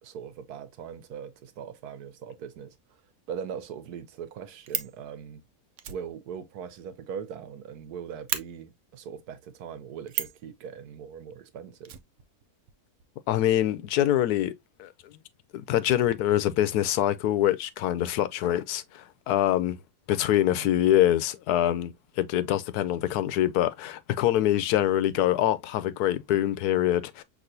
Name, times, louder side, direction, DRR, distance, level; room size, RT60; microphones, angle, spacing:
voice 1, 0.0-2.8 3.3-5.4 5.9-11.9 20.5-20.8, right 7 dB, 85° right, 1.3 m, -40 dB
Fire, 4.3-5.0 5.8-7.5 7.8-7.9 8.3-8.4 10.1-10.4 11.8-12.7 13.0-13.1 13.3-13.4, right 10 dB, 65° right, 0.8 m, -34 dB
voice 2, 13.3-14.5 14.8-14.9 15.5-19.8 20.1-27.2, left 12 dB, 85° left, 1.1 m, -25 dB
6.1 x 2.9 x 2.6 m
omnidirectional pair, 1.6 m